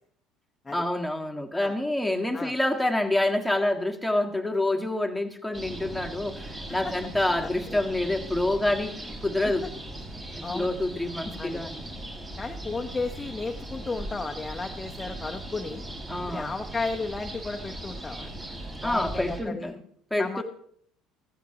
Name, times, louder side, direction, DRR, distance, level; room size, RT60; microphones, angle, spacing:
voice 1, 0.7-8.9 9.2-9.7 10.4-11.9 16.1-16.5 18.8-19.8 20.1-20.4, left 1 dB, ahead, 2 dB, 1.7 m, -27 dB
sound 1, 5.5-19.4, right 1 dB, 25° right, 5.1 m, -39 dB
voice 2, 7.4-7.8 9.4-9.5 10.4-10.8 11.4-11.6 12.4-15.8 16.3-18.3 18.8-19.7 20.2-20.4, left 3 dB, 20° left, 2 dB, 0.9 m, -34 dB
15.0 x 14.0 x 2.9 m, 0.64 s
hypercardioid pair, 70°, 0 cm